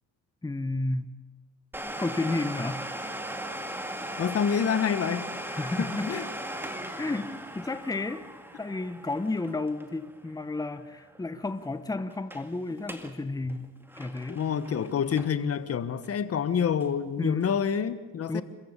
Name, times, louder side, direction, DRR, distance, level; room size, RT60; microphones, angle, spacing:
voice 1, 0.4-1.1 2.0-2.8 5.5-6.1 7.0-8.3 8.6-14.4 17.2-17.6 18.3-18.4, left 2 dB, 10° left, 11 dB, 1.1 m, -32 dB
Domestic sounds home sounds, 1.7-11.2 11.4-11.5 12.1-12.5 12.8-13.2 13.5-15.6 16.0-16.1 16.8-16.9, right 1 dB, 5° right, 2.2 m, -38 dB
voice 2, 4.2-5.3 5.8-6.2 14.3-18.4, left 7 dB, 50° left, 13 dB, 1.3 m, -27 dB
26.5 x 14.5 x 8.3 m, 1.3 s
cardioid pair, 90°, 30 cm